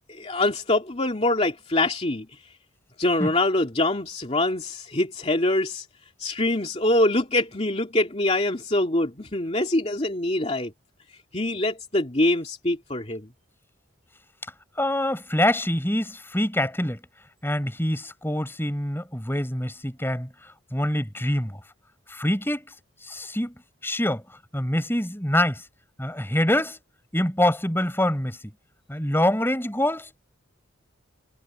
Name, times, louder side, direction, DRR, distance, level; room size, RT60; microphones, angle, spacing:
voice 1, 0.0-2.3 3.0-5.9 6.2-10.7 11.3-13.3, left 2 dB, 30° left, 2.6 m, -24 dB
voice 2, 14.8-17.0 17.4-21.6 22.1-22.7 23.0-23.5 23.8-25.7 26.0-26.8 27.1-28.4 28.9-30.1, left 1 dB, 10° left, 4.7 m, -25 dB
head